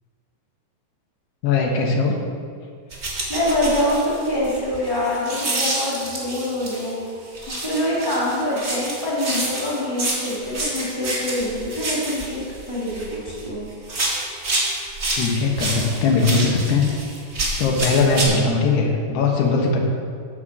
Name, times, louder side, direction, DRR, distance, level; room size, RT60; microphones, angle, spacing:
voice 1, 1.4-2.2 15.2-16.9 17.6-19.8, left 4 dB, 75° left, 1 dB, 3.3 m, -20 dB
sound 1, 2.9-6.9 7.3-13.5 13.8-18.2, right 2 dB, 80° right, 0.6 m, -28 dB
voice 2, 3.3-7.0 7.6-12.4 12.7-13.7, left 1 dB, 10° right, -7 dB, 1.5 m, -25 dB
9.6 x 6.5 x 7.5 m, 2.2 s
omnidirectional pair, 4.9 m